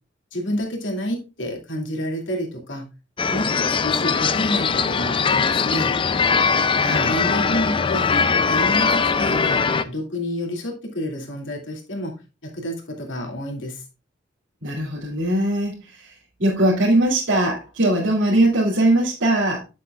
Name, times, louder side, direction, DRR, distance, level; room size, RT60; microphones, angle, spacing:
voice 1, 0.3-2.9 3.3-5.9 7.1-8.1 8.4-12.1 12.4-13.8, equal, 80° left, 2.6 m, -29 dB
sound 1, 3.2-9.8, left 5 dB, 30° left, 0.5 m, -21 dB
voice 2, 6.7-7.1 14.6-19.6, right 1 dB, 90° right, 2.6 m, -21 dB
9.2 x 7.3 x 2.4 m
head